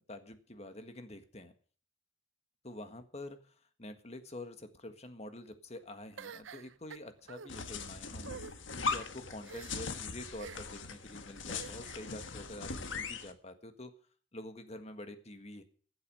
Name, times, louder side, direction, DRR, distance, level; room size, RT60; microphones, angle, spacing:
voice 1, 0.1-1.5 2.6-3.4 3.8-8.4 8.7-13.9 14.3-15.6, left 1 dB, 35° left, 8 dB, 1.6 m, -47 dB
sound 1, 6.2-7.5 8.2-8.5 9.4-9.9 10.4-10.8 11.5-12.1, right 6 dB, 75° right, 0.7 m, -48 dB
sound 2, 7.5-13.3, left 4 dB, 75° left, 1.5 m, -40 dB
14.5 x 8.1 x 7.7 m, 0.44 s
head